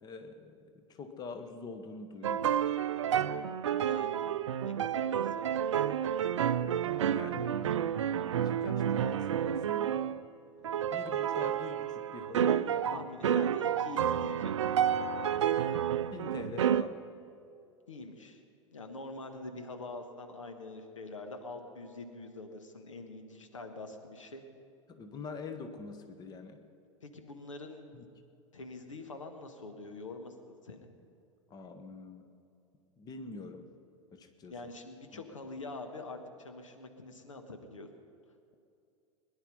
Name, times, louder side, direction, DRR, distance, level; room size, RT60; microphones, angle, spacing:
voice 1, 0.0-2.5 6.2-6.5 7.1-7.5 8.3-10.2 10.7-13.1 16.1-16.9 24.9-26.6 27.9-28.0 31.5-32.3 33.0-33.7 34.1-34.5 35.1-35.2, left 4 dB, 25° left, 7 dB, 1.2 m, -45 dB
sound 1, 2.2-10.2 10.6-16.8, right 9 dB, 65° right, 0.5 m, -30 dB
voice 2, 3.8-4.3 4.6-5.6 12.9-15.1 17.9-18.4 18.7-24.4 27.0-28.0 28.5-30.9 34.5-37.9, left 2 dB, 75° left, 6 dB, 1.4 m, -45 dB
21.5 x 10.5 x 5.4 m, 2.5 s
figure-of-eight pair, 85°, 16 cm